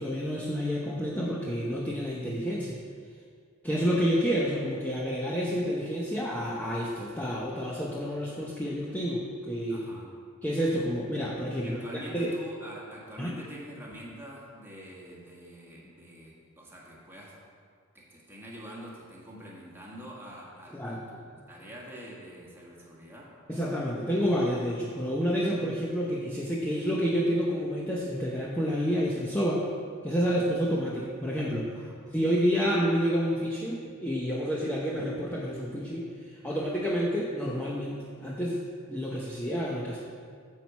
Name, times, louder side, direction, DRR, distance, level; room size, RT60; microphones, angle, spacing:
voice 1, 0.0-2.8 3.6-9.8 10.4-11.8 12.1-12.3 13.2-13.3 20.7-21.1 23.5-29.7 30.0-31.7 32.1-38.6 38.9-40.0, equal, 10° left, -4 dB, 0.7 m, -29 dB
voice 2, 9.7-10.1 11.6-17.4 17.9-23.3 31.7-31.9, equal, 10° right, -5 dB, 1.6 m, -45 dB
9.6 x 4.5 x 7.2 m, 2.1 s
head